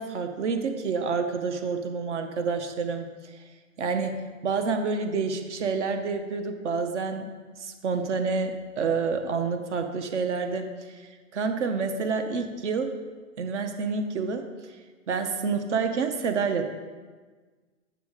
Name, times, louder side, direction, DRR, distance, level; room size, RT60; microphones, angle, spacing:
voice 1, 0.0-3.5 3.8-7.3 7.6-12.9 13.4-14.8 15.1-16.7, right 5 dB, 60° right, 7 dB, 1.0 m, -28 dB
9.1 x 6.6 x 4.9 m, 1.4 s
hypercardioid pair, 170°, 41 cm